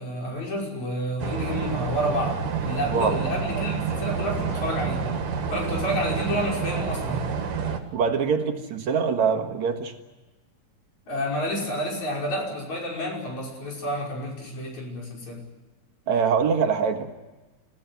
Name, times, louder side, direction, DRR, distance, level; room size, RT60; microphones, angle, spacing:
voice 1, 0.0-5.1 5.5-7.3 11.1-15.4, equal, 60° left, -1 dB, 7.0 m, -29 dB
sound 1, 1.2-7.8, right 6 dB, 90° right, 3.7 m, -28 dB
voice 2, 7.9-9.9 16.1-17.1, right 6 dB, 65° right, 5 dB, 2.8 m, -23 dB
27.0 x 16.0 x 9.3 m, 1.2 s
omnidirectional pair, 3.6 m